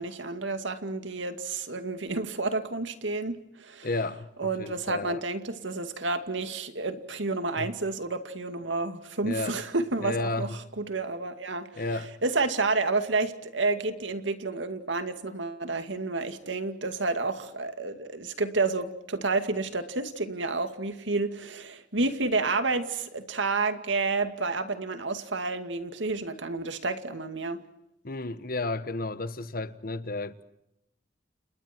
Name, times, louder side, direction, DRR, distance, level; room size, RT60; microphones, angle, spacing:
voice 1, 0.0-3.9 4.4-11.8 12.2-27.6, right 3 dB, 75° right, 2.3 m, -30 dB
voice 2, 3.8-5.2 7.6-7.7 9.2-9.6 10.0-10.6 11.7-12.1 28.0-30.4, left 2 dB, 50° left, 1.2 m, -32 dB
30.0 x 29.5 x 4.5 m
head